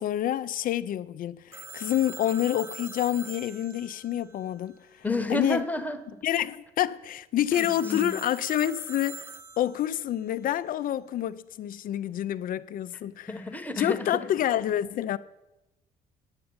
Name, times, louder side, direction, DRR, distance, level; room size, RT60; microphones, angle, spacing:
voice 1, 0.0-5.6 6.2-9.3 9.6-13.4 13.8-15.2, left 11 dB, 55° left, 0.5 m, -28 dB
Telephone, 1.5-5.2 7.5-10.1, right 3 dB, 15° right, 0.8 m, -44 dB
voice 2, 5.0-6.2 7.5-8.1 13.3-14.3, left 2 dB, 10° left, 1.1 m, -31 dB
9.8 x 6.8 x 8.7 m
cardioid pair, 110°, 17 cm